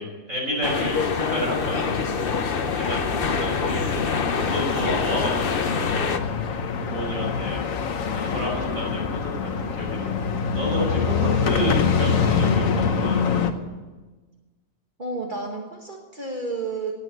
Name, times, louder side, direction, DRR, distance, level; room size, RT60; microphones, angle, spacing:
voice 1, 0.0-2.0 2.2-2.4 2.7-3.9 4.3-6.0 6.9-7.6 8.1-10.1 10.5-13.3, equal, 80° right, -2 dB, 6.4 m, -30 dB
sound 1, 0.6-6.2, left 5 dB, 45° left, 1.0 m, -26 dB
sound 2, 1.6-13.5, left 6 dB, 85° left, 1.4 m, -25 dB
voice 2, 15.0-16.9, right 3 dB, 40° right, 1 dB, 1.7 m, -31 dB
18.5 x 8.4 x 9.2 m, 1.3 s
omnidirectional pair, 1.4 m